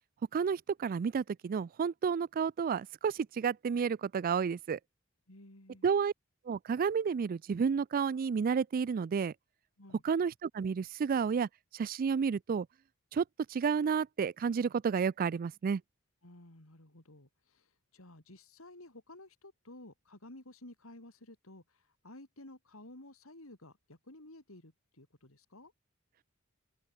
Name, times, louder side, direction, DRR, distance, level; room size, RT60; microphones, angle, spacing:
voice 1, 0.3-4.8 5.8-6.1 6.5-9.3 10.0-12.7 13.1-13.2 13.5-15.8, right 6 dB, 40° right, 0.3 m, -31 dB
voice 2, 5.3-5.9 9.8-10.0 16.2-25.7, left 1 dB, 75° left, 3.9 m, -54 dB
open air
head